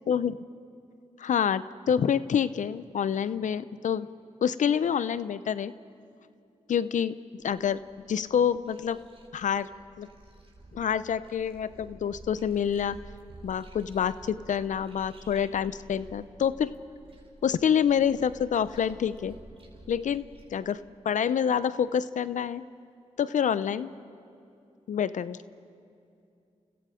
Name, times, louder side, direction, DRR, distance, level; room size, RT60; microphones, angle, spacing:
voice 1, 0.1-0.4 1.2-4.1 4.4-5.7 6.7-9.0 9.3-9.7 10.0-10.1 10.7-13.0 13.4-16.7 17.4-19.4 19.9-20.2 20.5-22.6 23.2-23.9 24.9-25.4, left 8 dB, 80° left, 15 dB, 0.7 m, -27 dB
sound 1, 7.4-20.6, right 2 dB, 45° right, 4.9 m, -51 dB
30.0 x 29.5 x 5.1 m, 2.6 s
cardioid pair, 55°, 13 cm